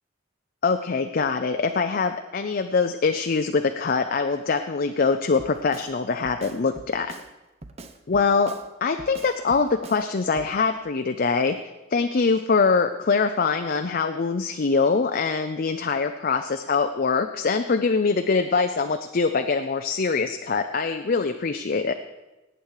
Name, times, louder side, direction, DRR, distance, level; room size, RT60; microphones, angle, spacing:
voice 1, 0.6-7.1 8.1-8.5 8.8-11.6 11.9-21.9, left 4 dB, 45° left, 7 dB, 0.5 m, -23 dB
Drum kit, 5.4-5.9 6.2-7.3 7.6-8.7 9.0-10.0 10.4-10.5, right 2 dB, 30° right, 0.7 m, -43 dB
18.0 x 8.8 x 4.8 m, 1.1 s
head